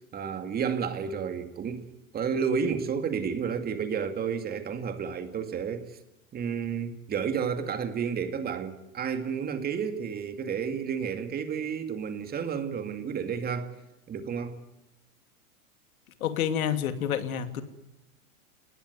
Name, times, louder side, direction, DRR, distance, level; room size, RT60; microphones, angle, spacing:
voice 1, 0.1-1.8 2.1-6.0 6.3-13.8 14.1-14.6, right 6 dB, 20° right, 8 dB, 2.2 m, -31 dB
voice 2, 16.2-17.6, left 9 dB, 70° left, 9 dB, 2.6 m, -28 dB
27.5 x 19.5 x 9.7 m, 0.87 s
hypercardioid pair, 130°, 44 cm